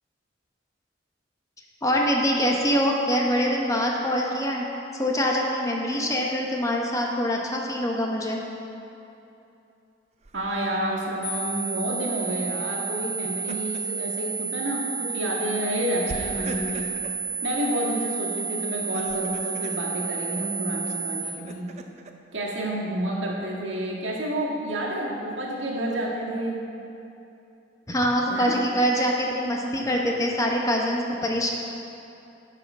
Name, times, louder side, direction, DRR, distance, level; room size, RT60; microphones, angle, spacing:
voice 1, 1.8-4.7 4.9-8.4 27.9-31.5, equal, 20° left, -1 dB, 1.0 m, -24 dB
Laughter, 10.2-10.8 13.1-14.0 14.4-14.6 16.1-17.2 18.8-19.8 20.9-22.1, right 2 dB, 35° right, 0.5 m, -40 dB
voice 2, 10.3-16.9 17.4-21.7 22.3-26.6 28.3-28.6, right 1 dB, 85° right, -3 dB, 1.7 m, -29 dB
sound 1, 11.2-21.2, right 4 dB, 85° left, 2.2 m, -31 dB
9.8 x 5.7 x 6.0 m, 2.8 s
head